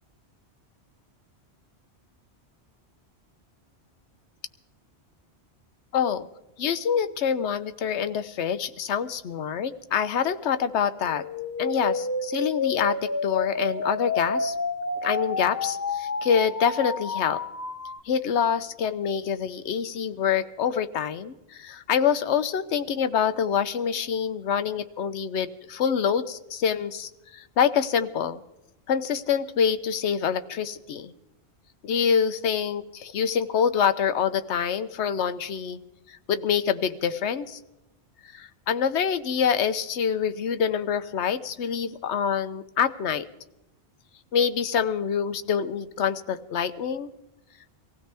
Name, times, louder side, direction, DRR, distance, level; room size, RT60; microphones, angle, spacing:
voice 1, 5.9-6.3 6.6-11.2 11.6-14.5 15.0-17.4 18.0-28.4 28.9-31.1 31.8-35.8 36.1-37.6 38.2-43.3 44.3-47.1, left 7 dB, 80° left, 12 dB, 1.0 m, -26 dB
sound 1, 11.0-18.0, left 3 dB, 25° left, 0.4 m, -30 dB
24.0 x 16.0 x 3.4 m, 0.93 s
omnidirectional pair, 1.1 m